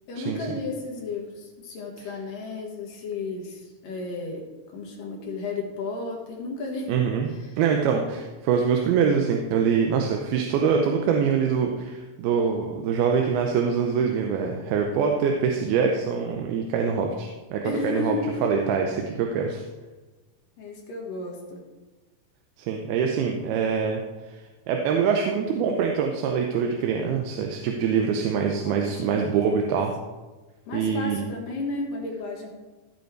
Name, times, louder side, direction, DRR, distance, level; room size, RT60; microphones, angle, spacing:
voice 1, 0.1-4.4 4.7-7.1 7.4-7.6 17.6-18.5 20.6-21.6 28.6-29.2 29.5-29.8 30.7-32.5, left 3 dB, 65° left, -1 dB, 3.0 m, -33 dB
voice 2, 6.9-7.3 7.6-19.6 22.6-24.0 24.3-24.4 24.7-29.9 30.7-31.2, right 6 dB, 90° right, 2 dB, 2.7 m, -24 dB
15.5 x 5.3 x 4.6 m, 1.2 s
omnidirectional pair, 4.4 m